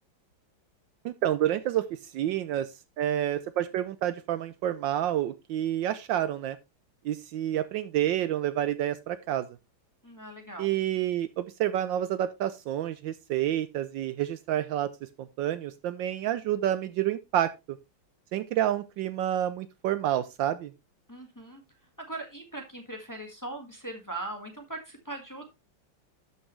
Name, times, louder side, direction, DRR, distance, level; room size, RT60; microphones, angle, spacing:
voice 1, 1.0-2.7 3.0-6.6 7.0-9.5 10.6-14.9 15.2-17.8 18.3-20.7, right 12 dB, 75° right, 13 dB, 1.2 m, -29 dB
voice 2, 10.0-10.8 21.1-21.6 22.1-25.5, right 2 dB, 10° left, 3 dB, 1.4 m, -40 dB
12.5 x 5.6 x 3.1 m, 0.24 s
omnidirectional pair, 2.2 m